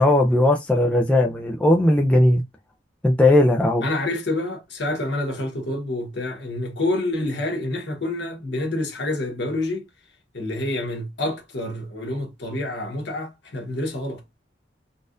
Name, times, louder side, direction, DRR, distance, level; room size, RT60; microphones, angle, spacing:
voice 1, 0.0-2.4 3.0-3.9, left 1 dB, 5° left, 0.3 m, -18 dB
voice 2, 3.8-9.9 10.3-14.2, left 2 dB, 70° left, 1.2 m, -27 dB
4.1 x 2.4 x 2.5 m
head